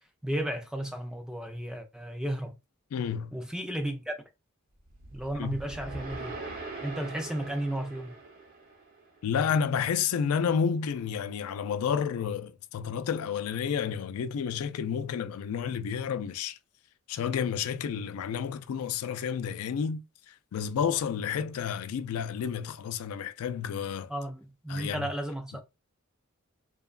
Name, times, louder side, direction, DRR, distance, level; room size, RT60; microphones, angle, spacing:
voice 1, 0.2-2.5 3.3-4.2 5.1-6.3 6.8-8.2 24.1-25.6, right 1 dB, 5° right, 0.3 m, -34 dB
voice 2, 2.9-3.3 5.4-5.6 9.2-16.6 17.1-24.1 24.7-25.1, left 7 dB, 80° left, 0.3 m, -30 dB
sound 1, 4.9-9.2, right 3 dB, 45° right, 0.7 m, -42 dB
2.8 x 2.2 x 2.3 m
head